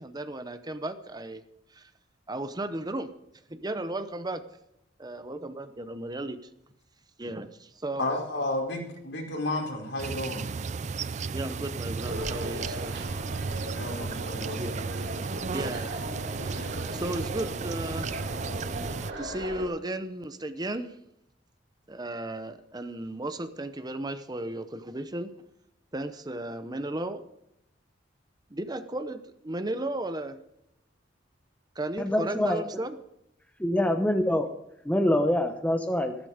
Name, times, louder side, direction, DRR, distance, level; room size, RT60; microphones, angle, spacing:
voice 1, 0.0-1.4 1.7-1.9 2.3-3.1 3.5-4.4 5.0-6.4 7.2-8.0 11.3-13.0 14.6-14.7 15.5-16.0 16.4-18.2 18.7-20.9 21.9-25.3 25.9-27.2 28.5-30.4 31.8-33.0, right 1 dB, 20° right, 10 dB, 0.8 m, -35 dB
voice 2, 8.0-10.5 13.7-14.6, left 2 dB, 70° left, 0 dB, 4.9 m, -32 dB
sound 1, 10.0-19.1, right 4 dB, 40° right, 0.4 m, -34 dB
sound 2, 12.0-19.7, right 1 dB, 80° right, 4.4 m, -38 dB
voice 3, 32.0-32.6 33.6-34.5 34.8-36.2, left 1 dB, 10° left, 6 dB, 0.9 m, -25 dB
15.0 x 13.5 x 5.1 m, 0.80 s
head